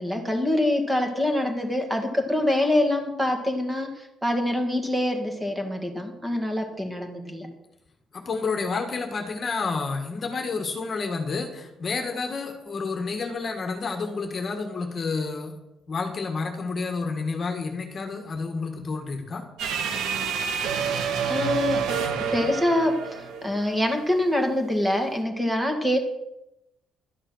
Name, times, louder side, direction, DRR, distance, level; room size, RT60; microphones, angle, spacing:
voice 1, 0.0-7.5 21.3-21.8 22.3-26.0, left 1 dB, 5° right, 4 dB, 1.9 m, -25 dB
voice 2, 8.1-15.5 15.9-19.4, left 4 dB, 30° left, 4 dB, 1.7 m, -30 dB
sound 1, 19.6-24.0, right 6 dB, 75° right, 2.0 m, -28 dB
12.5 x 10.0 x 6.3 m, 0.90 s
cardioid pair, 165°, 0 cm